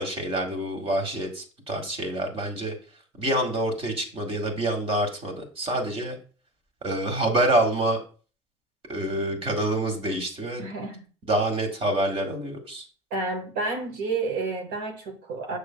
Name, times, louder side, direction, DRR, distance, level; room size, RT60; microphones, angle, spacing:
voice 1, 0.0-2.7 3.2-6.2 6.8-8.0 8.9-10.7 11.3-12.9, right 1 dB, 40° right, 4 dB, 2.0 m, -26 dB
voice 2, 10.6-11.0 13.1-15.6, right 3 dB, 65° right, 3 dB, 1.3 m, -30 dB
6.9 x 6.3 x 2.3 m, 0.39 s
hypercardioid pair, 60°, 16 cm